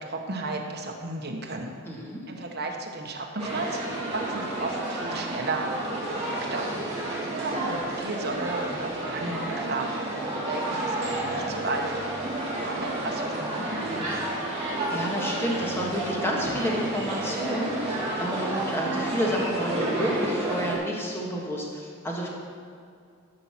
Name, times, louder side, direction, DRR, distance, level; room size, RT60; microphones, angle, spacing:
voice 1, 0.0-1.7 2.3-6.9 7.3-11.9 12.6-14.2, right 2 dB, 50° right, 1 dB, 1.2 m, -34 dB
voice 2, 1.8-2.2 14.9-22.3, equal, 10° left, -3 dB, 1.7 m, -30 dB
sound 1, 3.4-20.8, right 2 dB, 30° right, 2.5 m, -30 dB
13.0 x 5.6 x 6.1 m, 2.3 s
head